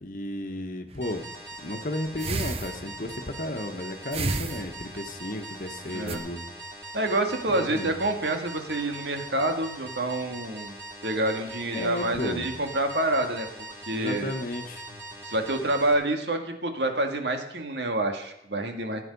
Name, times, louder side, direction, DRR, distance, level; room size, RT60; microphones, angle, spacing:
voice 1, 0.0-1.2 1.6-6.5 7.5-7.9 11.7-12.5 13.9-15.0, left 1 dB, 50° left, 7 dB, 1.3 m, -33 dB
sound 1, 0.9-1.2 2.2-3.2 4.1-5.1 5.7-6.2, right 3 dB, 35° right, 0.9 m, -32 dB
sound 2, 1.0-15.9, right 2 dB, 15° right, 3.5 m, -42 dB
voice 2, 6.9-10.8 11.0-13.5 13.9-14.3 15.2-19.0, right 2 dB, 75° right, 5 dB, 2.0 m, -27 dB
16.0 x 9.4 x 5.4 m, 0.82 s
head